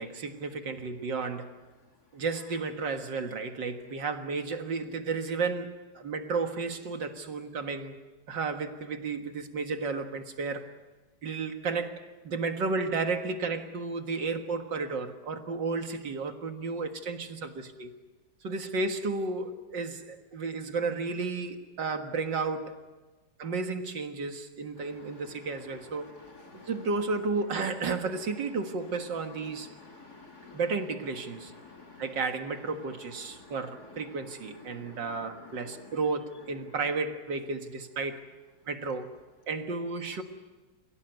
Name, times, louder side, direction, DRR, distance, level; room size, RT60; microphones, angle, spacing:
voice 1, 0.0-1.5 2.1-8.0 8.3-10.7 11.2-17.9 18.4-22.8 23.4-26.1 26.5-29.7 30.5-31.5 32.0-38.2 38.7-39.2 39.5-40.2, right 4 dB, 70° right, 6 dB, 2.4 m, -33 dB
voice 2, 24.8-25.2 26.0-26.7 29.7-30.6 31.6-32.0 33.4-33.5 34.7-35.0 35.6-35.8, left 3 dB, 55° left, 1 dB, 2.7 m, -51 dB
30.0 x 17.0 x 9.3 m, 1.3 s
omnidirectional pair, 2.0 m